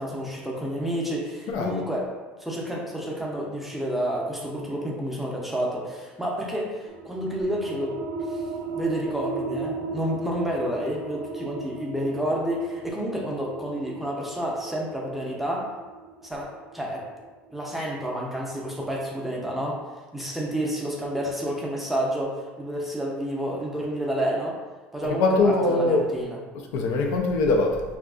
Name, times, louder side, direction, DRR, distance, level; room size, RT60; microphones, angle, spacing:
voice 1, 0.0-2.1 2.4-8.0 8.3-8.4 8.7-15.7 16.2-17.0 17.5-19.8 20.1-24.6 24.9-26.4, equal, 5° right, -3 dB, 0.5 m, -30 dB
voice 2, 1.5-1.8 25.2-26.0 26.7-27.8, left 3 dB, 75° left, 1 dB, 0.4 m, -22 dB
sound 1, 6.9-18.1, right 3 dB, 65° right, 0.4 m, -36 dB
2.7 x 2.3 x 2.3 m, 1.3 s
supercardioid pair, 115°, 5 cm